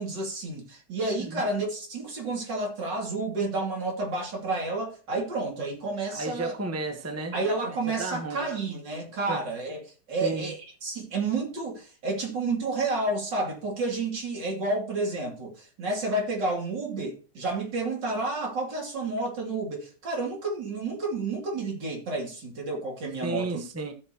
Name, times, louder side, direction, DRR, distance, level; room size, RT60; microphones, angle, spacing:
voice 1, 0.0-6.5 7.3-9.8 10.1-23.6, right 2 dB, 80° right, 3.5 m, -30 dB
voice 2, 6.1-7.4 7.7-8.5 9.3-9.4 10.2-10.5 23.2-23.9, right 3 dB, 10° right, 1.1 m, -33 dB
16.0 x 6.3 x 2.9 m
omnidirectional pair, 1.9 m